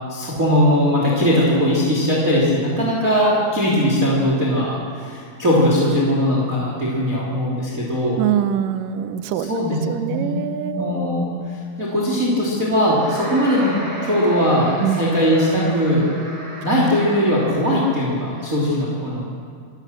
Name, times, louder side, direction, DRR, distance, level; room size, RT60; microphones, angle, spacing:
voice 1, 0.1-8.2 9.3-10.4 10.7-13.8 14.0-16.1 16.6-19.3, equal, 20° right, -4 dB, 3.3 m, -20 dB
voice 2, 8.2-9.5 9.9-10.9 14.8-15.0, right 10 dB, 75° right, 10 dB, 2.2 m, -23 dB
sound 1, 12.9-18.3, right 1 dB, 40° right, 4.3 m, -34 dB
27.0 x 16.0 x 6.6 m, 2.2 s
omnidirectional pair, 4.5 m